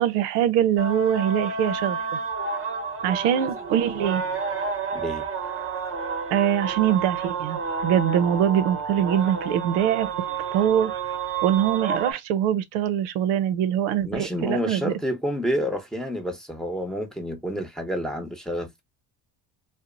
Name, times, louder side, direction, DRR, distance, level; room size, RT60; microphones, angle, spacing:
voice 1, 0.0-2.0 3.0-4.2 6.3-10.1 10.5-10.9 11.4-14.9, right 10 dB, 85° right, 0.6 m, -23 dB
sound 1, 0.8-12.1, right 5 dB, 30° right, 0.8 m, -30 dB
voice 2, 4.9-5.2 14.0-18.8, equal, ahead, 0.8 m, -29 dB
2.8 x 2.0 x 2.5 m
supercardioid pair, 80°, 41 cm